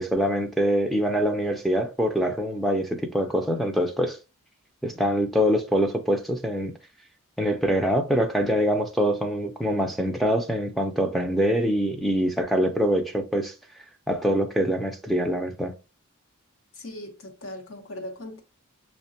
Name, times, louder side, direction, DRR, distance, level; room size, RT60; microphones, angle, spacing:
voice 1, 0.0-4.2 4.8-6.7 7.4-13.5 14.1-15.7, equal, ahead, 0.4 m, -24 dB
voice 2, 16.7-18.4, left 1 dB, 65° left, 0.9 m, -39 dB
6.4 x 2.1 x 2.6 m
head